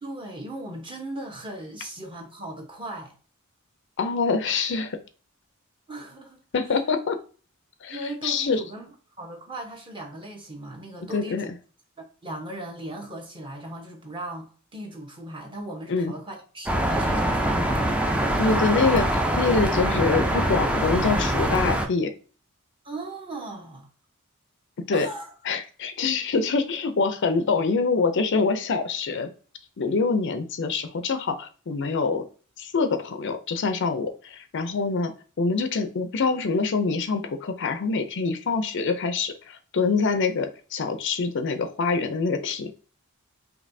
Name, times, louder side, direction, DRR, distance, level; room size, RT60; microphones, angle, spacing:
voice 1, 0.0-3.1 5.9-6.4 6.6-6.8 7.9-11.5 12.2-17.9 22.8-23.9 24.9-25.3, right 1 dB, 25° right, 0.9 m, -38 dB
voice 2, 4.0-5.0 6.5-7.2 7.8-8.6 11.1-11.5 15.9-16.1 18.4-22.1 24.9-25.1 25.4-29.3 29.8-32.2 32.6-35.1 35.4-42.7, left 4 dB, 55° left, 0.5 m, -25 dB
sound 1, 16.7-21.9, right 1 dB, 5° right, 0.4 m, -24 dB
5.1 x 2.9 x 2.6 m
head